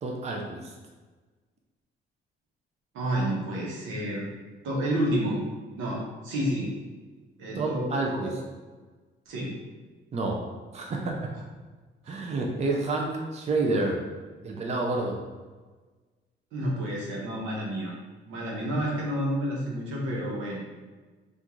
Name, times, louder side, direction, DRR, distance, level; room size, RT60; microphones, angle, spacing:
voice 1, 0.0-0.7 7.5-8.4 10.1-10.5 10.7-11.3 12.1-14.0 14.4-15.2, right 2 dB, 35° right, 0 dB, 0.6 m, -29 dB
voice 2, 2.9-4.2 4.6-5.4 5.8-6.7 7.4-7.9 8.2-8.3 9.3-9.5 12.0-12.1 16.5-17.9 18.3-20.6, equal, 85° right, -4 dB, 1.0 m, -29 dB
3.5 x 2.6 x 3.0 m, 1.3 s
cardioid pair, 90°, 20 cm